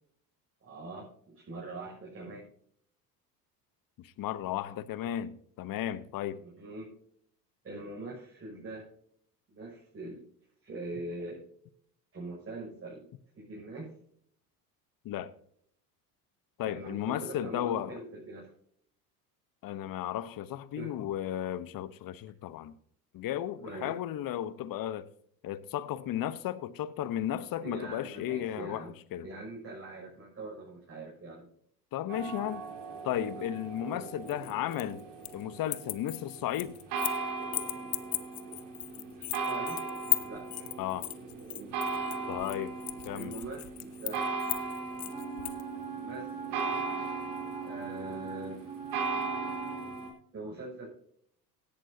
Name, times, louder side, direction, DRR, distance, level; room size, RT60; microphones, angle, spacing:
voice 1, 0.6-2.4 6.4-6.9 7.6-8.9 9.5-10.2 10.6-11.4 12.1-13.1 13.4-13.9 16.6-18.5 20.7-21.0 23.6-23.9 27.6-28.9 29.2-31.5 33.3-33.4 39.0-39.9 40.2-40.7 43.1-44.3 45.9-46.4 47.6-48.6 50.3-50.9, right 2 dB, 25° right, 6.4 m, -42 dB
voice 2, 4.0-6.4 15.0-15.3 16.6-18.0 19.6-22.7 23.1-25.1 25.4-29.3 31.9-32.6 33.0-35.0 35.3-36.8 40.8-41.1 42.3-42.7 43.0-43.3, left 11 dB, 45° left, 1.0 m, -34 dB
sound 1, 32.1-50.1, right 4 dB, 55° right, 4.1 m, -38 dB
sound 2, 34.3-35.4 35.7-37.2 37.5-45.6, left 21 dB, 70° left, 1.1 m, -36 dB
Wind instrument woodwind instrument, 45.1-49.9, right 7 dB, 10° right, 6.0 m, -41 dB
16.5 x 12.0 x 2.8 m
hypercardioid pair, 70°, 48 cm